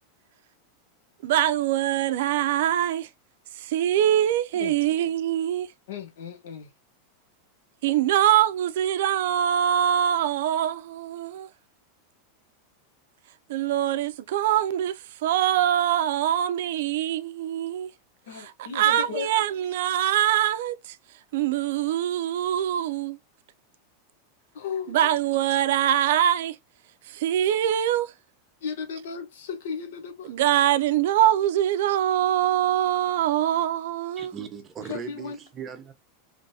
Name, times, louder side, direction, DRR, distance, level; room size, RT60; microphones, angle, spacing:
voice 1, 1.2-3.1 3.6-5.7 7.8-11.5 13.5-17.9 18.4-21.0 21.3-23.2 24.9-26.6 27.1-28.1 30.3-34.3, right 11 dB, 70° right, 0.4 m, -23 dB
voice 2, 5.9-6.7 18.3-19.3 24.5-25.0 28.6-30.3 34.9-35.4, left 6 dB, 85° left, 0.9 m, -35 dB
voice 3, 34.2-35.9, right 7 dB, 25° right, 0.7 m, -38 dB
3.3 x 3.1 x 2.7 m
supercardioid pair, 150°, 0 cm